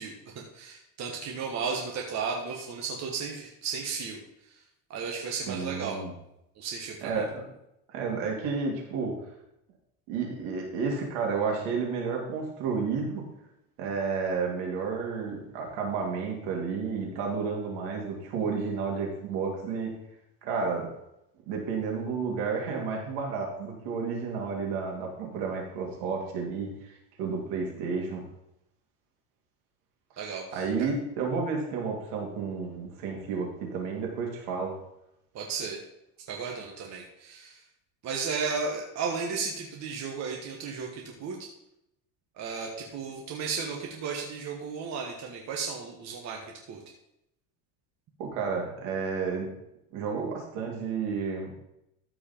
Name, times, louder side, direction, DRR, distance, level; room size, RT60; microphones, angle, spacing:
voice 1, 0.0-4.2 4.9-6.0 6.6-7.2 30.2-30.9 35.3-35.8 36.3-37.6 38.0-41.5 42.4-46.8, right 5 dB, 40° right, 0 dB, 1.4 m, -34 dB
voice 2, 5.5-6.1 7.0-7.4 7.9-9.1 10.1-13.3 13.8-19.9 20.4-20.9 21.5-28.2 30.5-34.7 48.2-49.5 49.9-51.5, right 5 dB, 75° right, 0 dB, 3.0 m, -31 dB
13.5 x 4.9 x 4.5 m, 0.83 s
cardioid pair, 145°, 40 cm